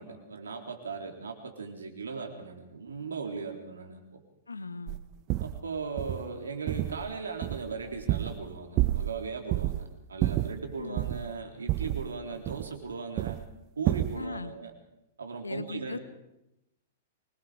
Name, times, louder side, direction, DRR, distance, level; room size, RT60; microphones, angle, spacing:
voice 1, 0.0-4.2 5.4-13.4 13.8-14.7 15.2-16.0, right 5 dB, 80° right, 4 dB, 3.6 m, -38 dB
voice 2, 4.5-5.0 10.8-11.1 14.1-14.5 15.4-16.0, left 3 dB, 85° left, 12 dB, 1.3 m, -38 dB
sound 1, 4.9-5.0 5.3-5.6 6.0-6.2 6.7-7.1 7.4-8.5 8.8-9.2 9.5-9.8 10.2-11.3 11.7-12.9 13.2-13.5 13.9-14.2, right 16 dB, 40° right, 0.7 m, -29 dB
24.5 x 21.0 x 5.1 m, 0.89 s
figure-of-eight pair, 105°, 0 cm